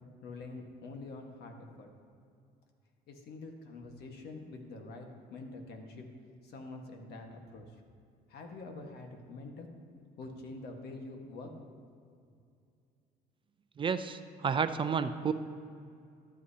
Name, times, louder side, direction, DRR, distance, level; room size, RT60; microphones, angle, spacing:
voice 1, 0.2-1.9 3.1-6.0 6.4-7.7 8.3-9.7 10.1-11.5, left 3 dB, 70° left, 3 dB, 1.5 m, -46 dB
voice 2, 13.8-15.3, right 6 dB, 30° right, 10 dB, 0.4 m, -31 dB
12.0 x 11.5 x 2.8 m, 2.4 s
cardioid pair, 110°, 17 cm